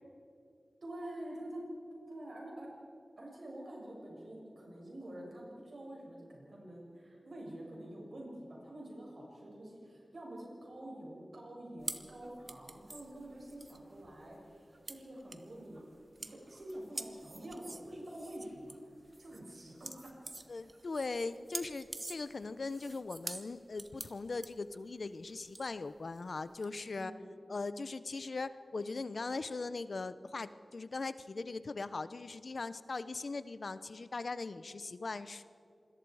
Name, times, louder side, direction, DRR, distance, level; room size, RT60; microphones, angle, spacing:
voice 1, 0.8-1.6 2.0-2.7 3.2-15.8 16.3-18.7 19.2-20.1 21.1-21.2 26.9-27.2, right 1 dB, 65° right, -2 dB, 6.7 m, -47 dB
sound 1, 11.8-26.7, right 2 dB, 35° right, 1.1 m, -47 dB
voice 2, 20.5-27.1 27.5-35.4, left 3 dB, 65° left, 13 dB, 0.7 m, -40 dB
27.0 x 21.5 x 4.8 m, 2.5 s
wide cardioid pair, 90°, 0 cm